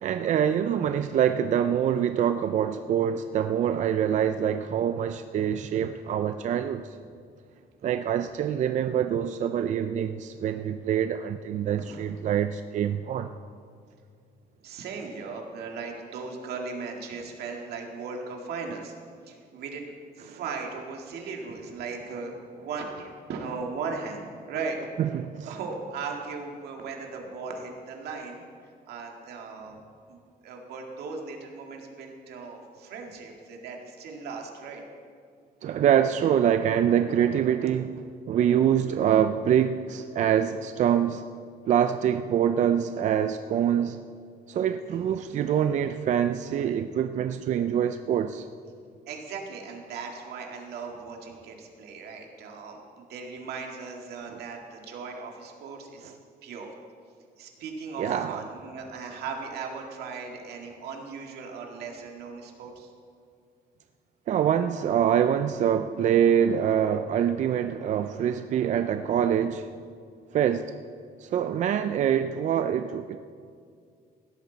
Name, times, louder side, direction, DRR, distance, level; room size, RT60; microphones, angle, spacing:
voice 1, 0.0-7.0 7.8-13.3 20.3-20.4 25.0-25.5 35.6-41.3 41.7-44.0 44.5-48.4 54.3-54.4 56.0-56.1 58.0-58.4 64.3-69.7 70.3-70.7 71.2-73.2, right 9 dB, 45° right, 0.4 m, -25 dB
voice 2, 14.6-18.9 19.3-24.8 25.4-28.4 28.9-29.8 30.1-34.8 45.0-45.1 49.1-56.2 56.4-56.7 57.4-62.9, right 4 dB, 80° right, 2.0 m, -37 dB
16.0 x 12.5 x 4.0 m
cardioid pair, 145°, 16 cm